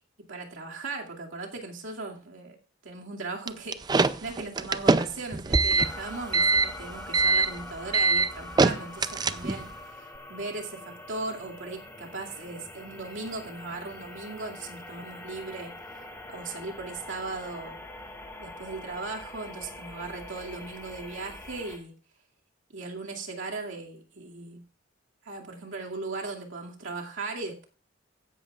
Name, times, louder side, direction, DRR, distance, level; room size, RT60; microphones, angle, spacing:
voice 1, 0.3-2.6 2.8-10.0 10.3-15.7 16.3-17.8 18.4-21.9 22.7-24.6 25.2-27.7, right 3 dB, 80° right, 0 dB, 2.4 m, -38 dB
sound 1, 3.5-9.7, right 3 dB, 20° right, 0.4 m, -23 dB
sound 2, 5.8-21.8, left 1 dB, 15° left, 2.0 m, -44 dB
15.5 x 11.5 x 2.4 m, 0.38 s
head